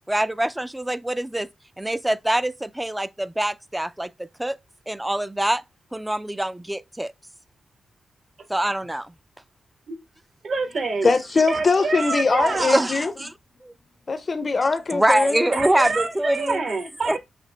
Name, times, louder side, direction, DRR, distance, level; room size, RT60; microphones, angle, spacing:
voice 1, 0.0-1.5 1.8-4.6 4.9-5.6 5.9-7.1 8.5-9.1 12.5-13.3 13.6-13.7 14.9-16.6 17.1-17.2, right 1 dB, 10° right, 0.4 m, -24 dB
voice 2, 10.4-11.1 11.5-12.9 15.5-17.2, right 4 dB, 60° right, 1.2 m, -26 dB
voice 3, 11.0-13.1 14.1-15.5, left 4 dB, 40° left, 0.5 m, -22 dB
5.8 x 2.7 x 3.3 m
cardioid pair, 95°, 0 cm